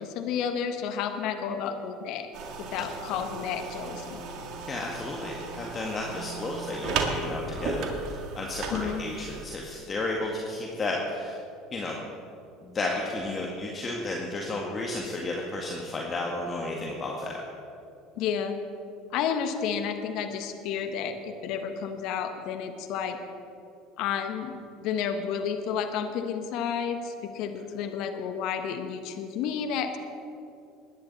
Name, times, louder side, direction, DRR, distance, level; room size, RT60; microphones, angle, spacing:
voice 1, 0.0-2.3 2.6-4.2 8.7-9.0 18.2-18.5 19.1-23.2 24.0-24.5 24.8-30.0, left 7 dB, 60° left, 7 dB, 1.3 m, -31 dB
sound 1, 2.3-9.4, right 4 dB, 55° right, 1.9 m, -35 dB
voice 2, 4.7-11.4 11.7-12.0 12.6-17.4, left 2 dB, 30° left, -1 dB, 1.9 m, -33 dB
21.0 x 10.5 x 4.2 m, 2.6 s
hypercardioid pair, 75°, 0 cm